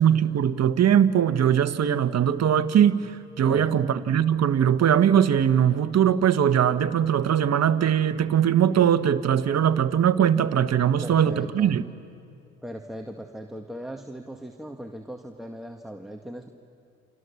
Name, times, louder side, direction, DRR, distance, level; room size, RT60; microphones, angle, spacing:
voice 1, 0.0-11.8, right 9 dB, 50° right, 11 dB, 1.4 m, -21 dB
voice 2, 3.4-3.9 11.0-11.7 12.6-16.5, right 1 dB, ahead, 3 dB, 2.0 m, -38 dB
29.5 x 27.0 x 7.2 m, 2.5 s
hypercardioid pair, 60°, 34 cm